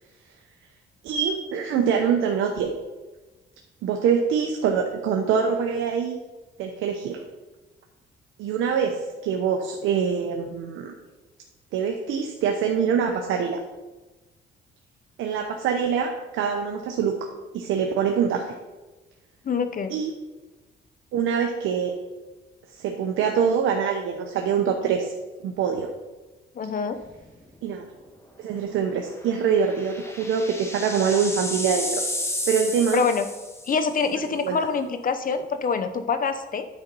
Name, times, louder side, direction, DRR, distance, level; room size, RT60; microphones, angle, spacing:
voice 1, 1.0-2.7 3.8-6.2 6.6-7.2 8.4-10.9 11.7-13.6 15.2-17.3 17.5-18.5 19.9-20.1 21.1-21.9 22.7-25.1 25.4-25.9 27.6-27.8 28.4-32.0 32.5-33.0 34.4-34.6, right 7 dB, 85° right, 3 dB, 0.8 m, -24 dB
voice 2, 19.4-20.0 26.5-27.0 32.9-33.3 33.7-36.7, left 5 dB, 45° left, 9 dB, 0.8 m, -25 dB
sound 1, 27.0-27.4 27.7-27.8 29.2-33.9, left 1 dB, 15° left, 1.4 m, -32 dB
9.3 x 4.2 x 5.3 m, 1.2 s
cardioid pair, 90°, 20 cm